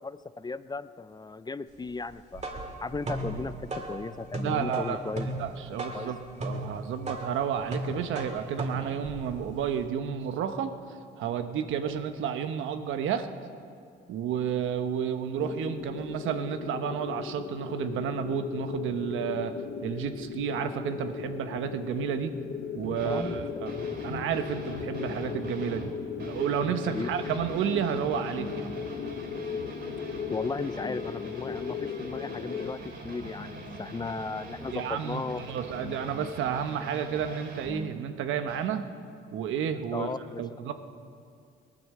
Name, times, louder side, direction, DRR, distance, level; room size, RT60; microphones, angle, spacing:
voice 1, 0.0-2.4 2.8-5.3 5.9-6.2 23.0-23.4 26.9-27.1 30.3-35.4 39.9-40.4, left 3 dB, 20° left, 14 dB, 0.5 m, -36 dB
sound 1, 2.1-9.8, right 1 dB, 35° right, 2.2 m, -37 dB
voice 2, 4.4-5.0 5.4-10.7 11.2-13.3 14.1-19.5 19.8-22.3 22.7-23.7 24.0-25.9 26.2-28.7 34.7-38.8 39.3-40.1 40.4-40.7, right 8 dB, 85° right, 8 dB, 1.1 m, -31 dB
sound 2, 15.4-32.7, left 7 dB, 60° left, 0.9 m, -37 dB
sound 3, 22.8-25.9 26.2-38.0 38.4-38.6, right 1 dB, 55° right, 3.8 m, -42 dB
17.5 x 10.5 x 7.7 m, 2.3 s
cardioid pair, 90°, 20 cm